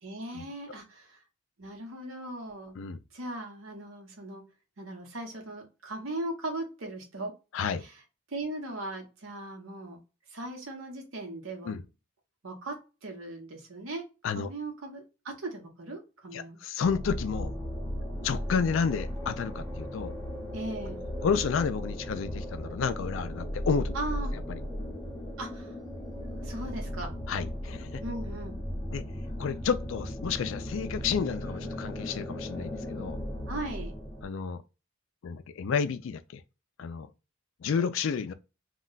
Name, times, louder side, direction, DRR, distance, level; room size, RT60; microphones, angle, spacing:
voice 1, 0.0-1.2 1.6-2.7 3.1-4.4 4.8-7.3 7.8-8.0 8.3-10.0 10.3-11.7 12.4-14.0 14.3-16.6 20.5-21.0 23.9-24.3 25.4-25.8 26.4-27.1 28.0-28.5 33.5-33.9, right 2 dB, 75° right, 1.0 m, -38 dB
voice 2, 7.5-7.9 11.6-11.8 14.2-14.5 16.3-17.5 18.2-20.1 21.2-23.9 24.5-24.6 27.3-28.0 28.9-29.0 29.4-33.2 34.2-34.6 35.2-36.4 36.8-37.1 37.6-38.3, left 6 dB, 65° left, 0.3 m, -31 dB
sound 1, 16.8-34.3, equal, 15° left, 0.7 m, -36 dB
2.3 x 2.2 x 3.8 m
head